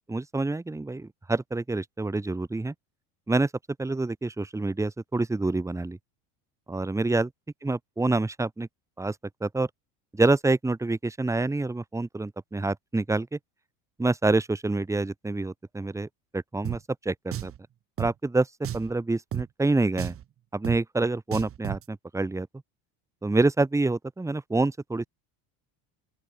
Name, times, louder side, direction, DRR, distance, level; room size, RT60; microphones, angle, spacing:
voice 1, 0.0-2.7 3.3-3.5 3.8-6.0 6.7-7.3 7.6-8.7 9.0-9.2 9.4-9.7 10.1-13.4 14.0-17.5 18.0-18.5 18.7-20.1 20.5-22.5 23.2-25.1, right 2 dB, 5° right, 2.9 m, -27 dB
Drum, 16.6-16.8 17.3-17.6 18.0-18.1 18.6-18.9 19.3-19.5 20.0-20.2 20.6-20.8 21.3-21.8, right 11 dB, 30° right, 1.9 m, -32 dB
open air
cardioid pair, 160°, 43 cm